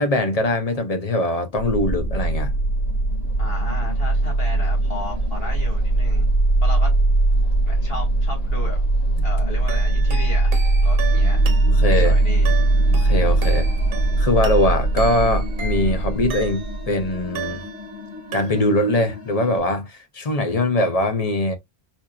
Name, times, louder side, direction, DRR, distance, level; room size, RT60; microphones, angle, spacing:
voice 1, 0.0-2.5 11.7-12.2 12.9-13.7 14.2-17.6 18.3-21.5, left 1 dB, 40° left, 0.8 m, -22 dB
sound 1, 1.6-17.5, right 2 dB, 80° left, 2.8 m, -20 dB
voice 2, 3.4-6.3 6.6-6.9 7.7-8.8 9.2-11.4 12.0-12.5, left 2 dB, 65° left, 2.1 m, -34 dB
sound 2, 9.7-16.9 17.3-18.0 18.3-18.9, right 7 dB, 65° right, 0.9 m, -36 dB
sound 3, 11.1-19.6, left 3 dB, 15° right, 0.9 m, -39 dB
4.4 x 2.7 x 2.3 m
omnidirectional pair, 1.1 m